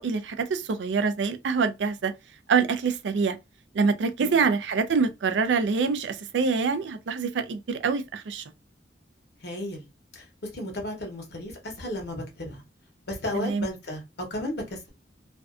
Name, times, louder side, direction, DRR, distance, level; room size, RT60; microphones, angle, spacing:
voice 1, 0.0-2.1 2.5-3.4 3.7-8.4 13.3-13.7, right 5 dB, 80° right, 0.4 m, -25 dB
voice 2, 4.2-4.5 9.4-9.9 10.1-10.2 10.5-12.6 13.1-14.0 14.3-14.9, left 1 dB, 70° left, 0.9 m, -34 dB
2.5 x 2.2 x 2.4 m
head